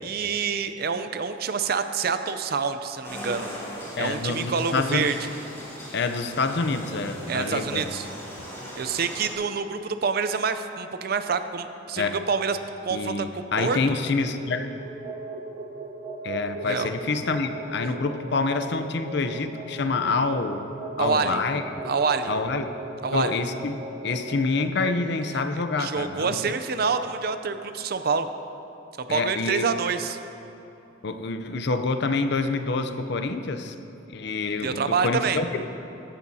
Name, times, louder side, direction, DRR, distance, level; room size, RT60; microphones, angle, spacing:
voice 1, 0.0-3.5 4.0-5.3 7.3-8.1 8.7-12.6 12.8-13.8 16.6-16.9 21.0-21.4 21.8-22.3 23.0-23.3 25.8-28.3 29.0-30.2 34.6-35.4, right 5 dB, 50° right, 10 dB, 0.5 m, -27 dB
sound 1, 3.0-9.3, equal, 15° left, 2.8 m, -39 dB
voice 2, 4.0-5.1 5.9-7.9 12.0-12.2 12.9-14.7 16.2-20.7 21.0-21.6 22.3-22.7 23.1-26.4 29.1-29.6 31.0-33.8 34.1-35.7, left 3 dB, 60° left, 8 dB, 0.6 m, -27 dB
sound 2, 13.4-27.7, right 2 dB, 30° right, 0.9 m, -39 dB
15.0 x 12.0 x 2.8 m, 3.0 s
head